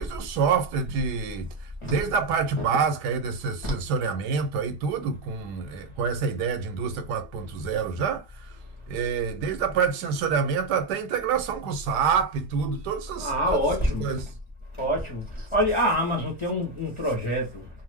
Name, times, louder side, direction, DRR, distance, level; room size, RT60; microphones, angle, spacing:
voice 1, 0.0-1.5 1.8-8.6 8.9-13.7 14.0-14.3, right 6 dB, 85° right, 1.2 m, -27 dB
voice 2, 13.2-14.2 14.8-17.7, equal, 25° left, 0.7 m, -26 dB
2.5 x 2.5 x 3.4 m
omnidirectional pair, 1.7 m